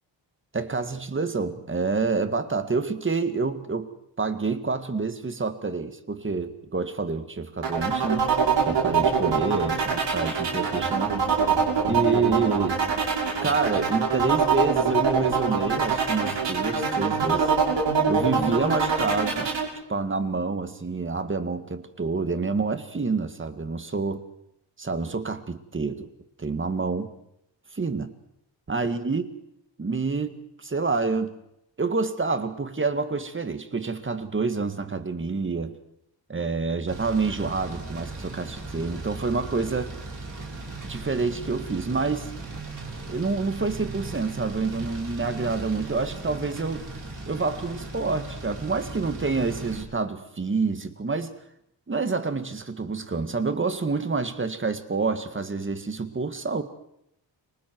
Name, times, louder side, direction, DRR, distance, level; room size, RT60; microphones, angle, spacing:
voice 1, 0.5-3.9 4.2-8.3 8.6-11.2 11.9-12.8 13.4-17.5 18.1-19.5 19.9-24.2 24.8-26.1 26.4-27.1 27.7-28.1 28.7-29.3 29.8-31.4 31.8-35.7 36.3-40.0 40.8-42.3 43.1-46.9 47.3-51.3 51.9-56.6, right 4 dB, 25° right, 9 dB, 2.0 m, -27 dB
sound 1, 7.6-19.6, right 5 dB, 70° right, 7.4 m, -24 dB
sound 2, 36.9-49.8, right 3 dB, 40° right, 5.9 m, -38 dB
30.0 x 25.0 x 4.7 m, 0.77 s
wide cardioid pair, 115°, 45 cm